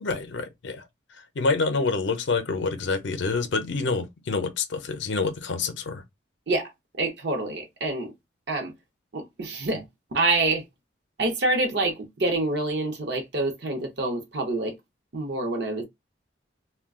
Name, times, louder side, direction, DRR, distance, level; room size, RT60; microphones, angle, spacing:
voice 1, 0.0-0.9 1.4-6.0, left 4 dB, 70° left, 0.5 m, -27 dB
voice 2, 7.0-8.1 8.5-8.7 9.1-9.8 10.1-10.6 11.2-11.9 12.2-14.7 15.1-15.8, right 2 dB, 60° right, 0.6 m, -26 dB
2.3 x 2.1 x 3.5 m
head